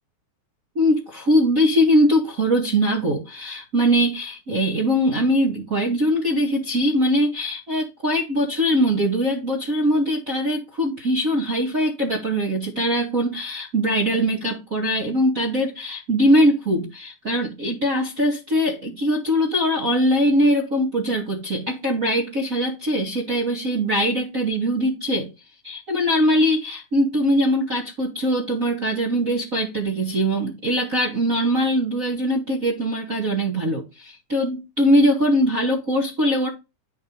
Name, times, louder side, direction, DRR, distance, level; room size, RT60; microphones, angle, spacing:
voice 1, 0.8-25.3 25.6-36.5, equal, 30° right, 2.2 m, -21 dB
9.8 x 4.4 x 5.4 m
omnidirectional pair, 3.6 m